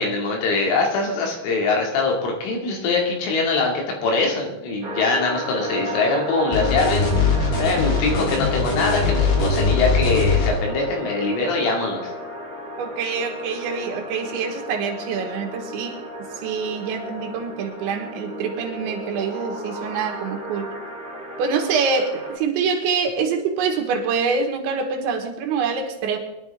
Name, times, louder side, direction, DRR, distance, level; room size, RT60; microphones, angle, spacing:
voice 1, 0.0-3.7 4.0-7.1 7.6-12.1, left 3 dB, 90° left, 0 dB, 5.1 m, -23 dB
sound 1, 4.8-22.4, equal, 50° right, 1.3 m, -34 dB
sound 2, 6.5-10.5, left 4 dB, 65° left, 5.3 m, -21 dB
voice 2, 12.8-20.7 21.4-26.2, right 5 dB, 75° right, 3 dB, 3.7 m, -25 dB
22.5 x 11.5 x 3.6 m, 0.97 s
omnidirectional pair, 5.6 m